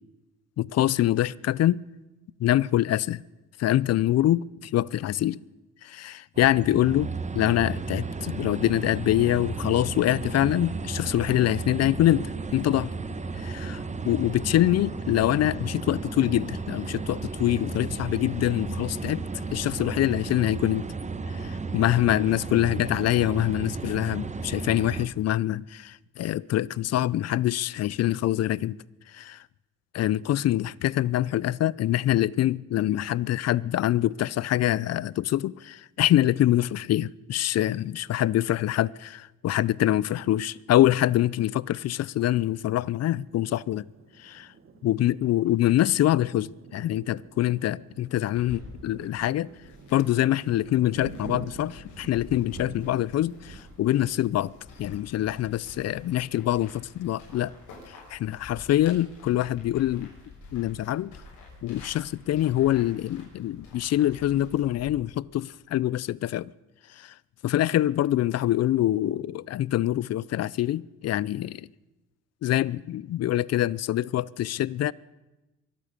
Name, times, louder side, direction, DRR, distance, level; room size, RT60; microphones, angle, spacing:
voice 1, 0.6-1.8 2.4-3.2 3.6-5.4 5.8-12.9 13.4-13.8 14.0-20.9 21.4-28.8 29.1-29.4 29.9-43.8 44.2-44.5 44.8-49.5 49.9-54.5 54.8-57.5 58.1-60.1 60.5-61.1 61.6-66.5 67.0-67.1 67.4-71.7 72.4-74.9, left 13 dB, 55° left, 0.5 m, -25 dB
sound 1, 6.4-25.1, right 4 dB, 25° right, 1.1 m, -34 dB
Thunder, 43.2-57.6 58.1-58.2 58.5-59.1, right 5 dB, 45° right, 1.4 m, -48 dB
sound 2, 48.3-64.9, left 3 dB, 80° left, 6.2 m, -48 dB
23.5 x 8.7 x 6.7 m
cardioid pair, 90°, 30 cm